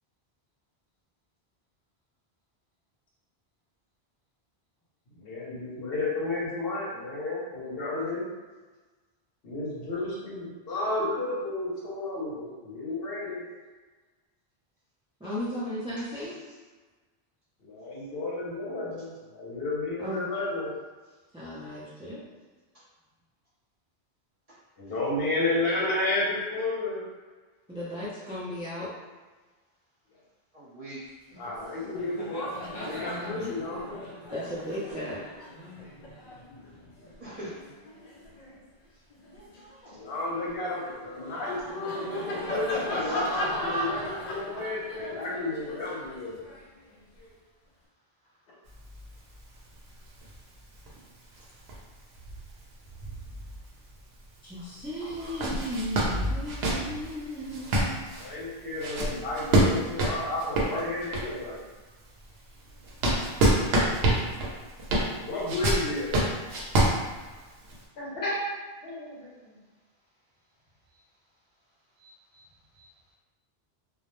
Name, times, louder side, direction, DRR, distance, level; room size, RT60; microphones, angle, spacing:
voice 1, 5.1-8.2 9.4-13.5 17.6-20.7 24.8-27.0 31.4-34.0 40.0-46.4 55.3-55.4 58.2-61.6 65.2-66.2 68.0-68.4 68.8-69.6, left 2 dB, 70° left, -5 dB, 0.9 m, -32 dB
voice 2, 15.2-16.4 20.0-20.3 21.3-22.2 27.7-28.9 32.9-33.5 34.3-35.2 54.4-58.1, equal, 10° right, -10 dB, 0.4 m, -35 dB
voice 3, 30.5-31.0 31.3-31.4 37.2-37.7 43.1-43.2 72.0-72.4 72.7-72.9, right 1 dB, 40° right, -9 dB, 0.8 m, -43 dB
Laughter, 31.4-31.6 31.9-38.6 39.1-47.3, equal, 55° left, 0.5 m, -37 dB
sound 1, 48.7-54.0 54.4-54.5 55.1-61.5 62.0-67.8, right 1 dB, 80° right, 0.8 m, -28 dB
2.3 x 2.0 x 2.9 m, 1.3 s
omnidirectional pair, 1.0 m